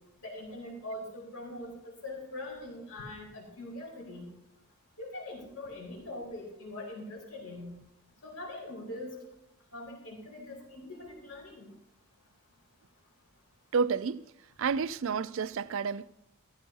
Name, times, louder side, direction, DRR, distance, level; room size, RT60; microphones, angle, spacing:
voice 1, 0.2-4.3 5.0-7.7 8.2-9.1 9.7-11.7, left 1 dB, 80° left, 4.4 m, -42 dB
voice 2, 13.7-14.2 14.6-16.1, right 5 dB, 60° right, 0.4 m, -30 dB
15.0 x 14.5 x 2.8 m
head